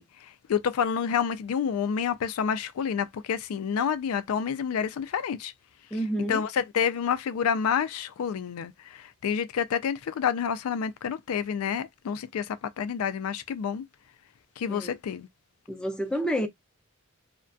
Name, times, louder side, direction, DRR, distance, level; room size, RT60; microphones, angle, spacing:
voice 1, 0.0-5.5 6.3-13.8 14.6-15.3, left 7 dB, 85° left, 0.3 m, -29 dB
voice 2, 5.9-6.4 14.7-15.0 15.7-16.5, equal, 5° left, 0.4 m, -29 dB
2.3 x 2.1 x 2.5 m
head